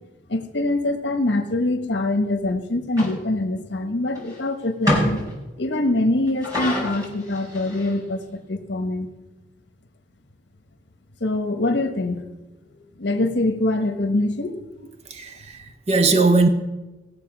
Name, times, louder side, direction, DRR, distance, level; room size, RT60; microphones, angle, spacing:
voice 1, 0.3-5.2 5.6-9.1 11.2-12.2 13.0-14.6, left 2 dB, 75° left, 7 dB, 1.2 m, -24 dB
sound 1, 3.0-3.1 4.1-4.3 4.8-5.3 6.3-8.0, left 1 dB, 20° right, 4.0 m, -25 dB
voice 2, 15.1-16.5, right 3 dB, 35° right, 7 dB, 0.9 m, -19 dB
17.5 x 6.9 x 6.0 m, 1.1 s
head